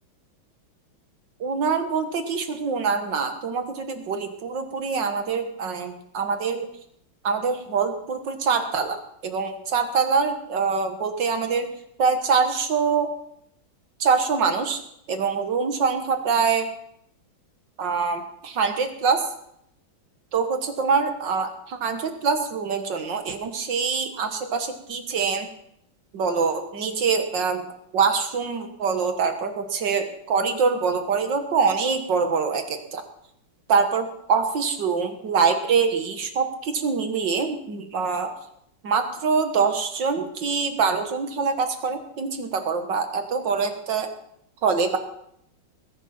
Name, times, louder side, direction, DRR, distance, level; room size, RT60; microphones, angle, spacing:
voice 1, 1.4-6.7 7.2-11.7 12.0-13.1 14.0-14.8 15.1-16.7 17.8-19.2 20.3-25.5 26.1-27.7 27.9-33.0 33.7-38.3 38.8-44.1 44.6-45.0, right 5 dB, 60° right, 6 dB, 2.2 m, -24 dB
20.5 x 11.0 x 4.4 m, 0.74 s
omnidirectional pair, 2.2 m